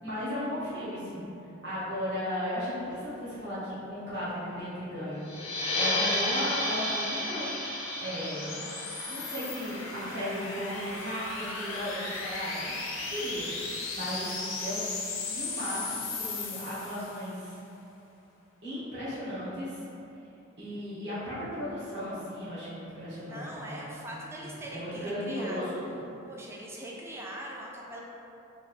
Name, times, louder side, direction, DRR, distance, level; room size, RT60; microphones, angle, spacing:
voice 1, 0.0-7.5 8.0-8.6 9.0-17.6 18.6-19.8 20.6-26.0, equal, 60° right, -11 dB, 1.2 m, -36 dB
sound 1, 4.8-17.4, left 3 dB, 85° left, 0.6 m, -38 dB
sound 2, 5.2-10.5, left 1 dB, 30° left, 0.6 m, -32 dB
voice 2, 23.2-25.6 26.3-28.0, right 1 dB, 15° right, -3 dB, 0.4 m, -41 dB
3.1 x 2.6 x 4.2 m, 2.8 s
head